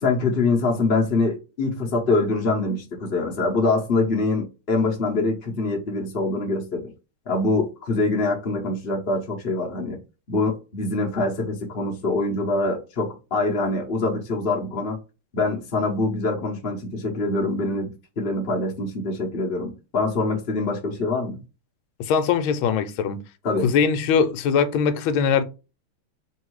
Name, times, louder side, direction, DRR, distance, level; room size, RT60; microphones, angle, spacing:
voice 1, 0.0-6.9 7.3-10.0 10.3-15.0 15.3-21.4 23.4-23.7, left 3 dB, 45° left, 0.7 m, -24 dB
voice 2, 22.0-23.2 23.6-25.4, left 6 dB, 75° left, 1.4 m, -21 dB
3.5 x 2.7 x 4.6 m
omnidirectional pair, 2.4 m